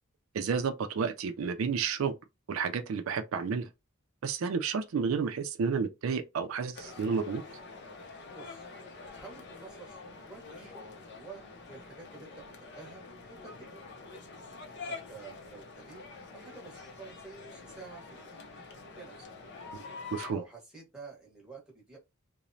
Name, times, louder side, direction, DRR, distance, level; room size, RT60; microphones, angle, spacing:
voice 1, 0.3-2.1 2.5-3.7 4.2-7.4 20.1-20.4, right 5 dB, 75° right, 0.4 m, -31 dB
sound 1, 6.7-20.3, left 4 dB, 55° left, 0.5 m, -46 dB
voice 2, 8.3-8.7 9.1-13.9 14.8-16.0 16.3-18.4 18.9-19.3 20.3-22.0, right 4 dB, 5° right, 1.0 m, -50 dB
3.0 x 2.0 x 2.6 m
head